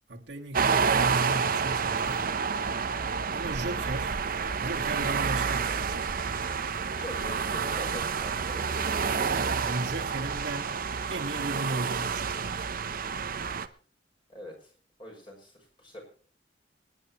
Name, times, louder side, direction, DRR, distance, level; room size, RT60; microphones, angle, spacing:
voice 1, 0.1-2.2 3.3-4.2 4.6-6.1 9.2-10.8 11.1-12.8, right 2 dB, 70° right, 1.8 m, -36 dB
sound 1, 0.5-13.7, right 5 dB, 50° right, 0.8 m, -29 dB
voice 2, 6.9-9.4 14.3-14.7 15.0-16.0, left 1 dB, 30° left, 6.4 m, -44 dB
26.0 x 10.5 x 3.0 m
head